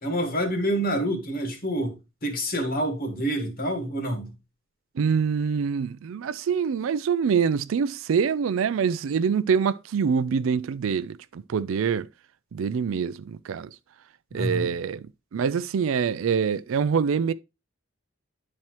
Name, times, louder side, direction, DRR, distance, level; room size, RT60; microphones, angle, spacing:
voice 1, 0.0-2.0 2.2-4.3 14.3-14.7, right 1 dB, 45° left, 1.6 m, -27 dB
voice 2, 5.0-12.1 12.5-13.7 14.3-15.1 15.3-17.3, right 6 dB, 70° right, 0.4 m, -25 dB
10.5 x 4.3 x 3.0 m
head